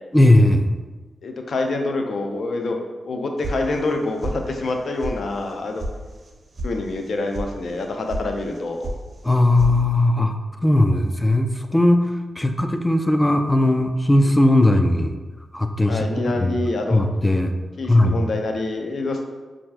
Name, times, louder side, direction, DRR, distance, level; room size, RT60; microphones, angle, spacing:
voice 1, 0.1-0.7 9.2-10.3 10.6-12.0 12.4-15.2 15.5-16.6 16.9-17.5 17.9-18.2, left 1 dB, 15° left, 7 dB, 0.4 m, -18 dB
voice 2, 1.2-2.8 3.0-5.8 6.6-8.9 15.9-17.0 17.8-19.2, left 2 dB, 70° left, 3 dB, 0.5 m, -26 dB
sound 1, 3.4-4.0 4.2-4.7 5.0-5.1 5.5-5.9 6.2-6.7 7.0-7.5 7.8-8.2 8.5-9.0 9.3-9.8, right 1 dB, 50° right, 0.5 m, -30 dB
5.4 x 2.5 x 2.4 m, 1.3 s
supercardioid pair, 45°, 0 cm